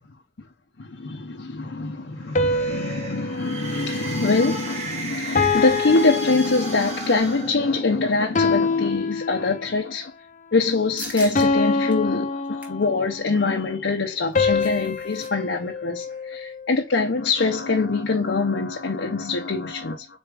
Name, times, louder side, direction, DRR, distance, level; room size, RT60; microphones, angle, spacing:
voice 1, 0.8-10.1 10.5-20.1, left 3 dB, 80° left, 0.7 m, -24 dB
sound 1, 2.2-8.2, right 2 dB, 35° right, 1.7 m, -35 dB
sound 2, 2.4-4.8 5.4-7.1 8.4-9.9 11.4-13.2 14.4-16.7, left 3 dB, 40° left, 0.6 m, -26 dB
sound 3, 11.0-11.5 11.9-12.0 12.4-12.8 14.1-15.3 15.6-15.7 16.0-16.3, equal, 10° right, 1.2 m, -39 dB
4.2 x 3.5 x 3.4 m
head